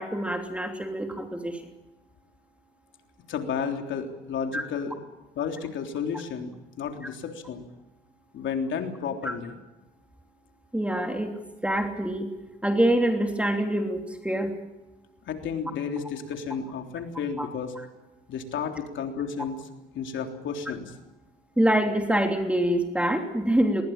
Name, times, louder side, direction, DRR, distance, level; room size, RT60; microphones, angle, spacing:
voice 1, 0.0-1.6 4.5-4.6 9.2-9.3 10.7-11.3 11.6-12.3 12.6-14.5 17.4-17.5 17.7-17.8 21.6-23.8, right 1 dB, 5° right, 4 dB, 3.1 m, -25 dB
voice 2, 3.3-5.0 5.3-7.6 8.3-9.5 15.2-17.7 18.3-19.6 19.9-20.9, left 6 dB, 75° left, 4 dB, 3.5 m, -32 dB
21.0 x 20.5 x 8.9 m, 1.0 s
cardioid pair, 90°, 20 cm